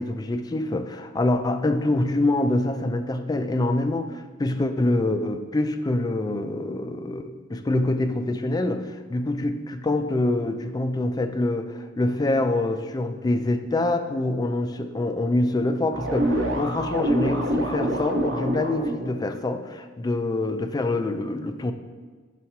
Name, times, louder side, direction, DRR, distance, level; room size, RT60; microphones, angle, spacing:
voice 1, 0.0-21.7, left 2 dB, 20° left, 8 dB, 0.3 m, -25 dB
sound 1, 15.9-19.1, right 1 dB, 80° right, 1.0 m, -26 dB
5.6 x 4.2 x 4.6 m, 1.5 s
head